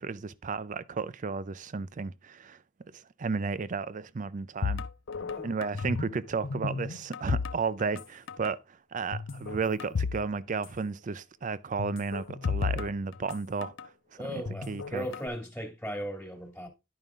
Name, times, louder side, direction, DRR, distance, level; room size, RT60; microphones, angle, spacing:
voice 1, 0.0-2.6 2.9-4.8 5.4-13.9 14.3-15.1, right 4 dB, 40° right, 0.4 m, -33 dB
sound 1, 4.6-6.2 6.4-8.0 8.3-8.5 9.1-10.2 10.5-10.6 11.8-13.9 14.5-15.3, left 5 dB, 65° left, 0.6 m, -33 dB
voice 2, 5.2-5.5 14.2-16.7, equal, 5° left, 1.8 m, -37 dB
10.5 x 5.3 x 3.6 m
head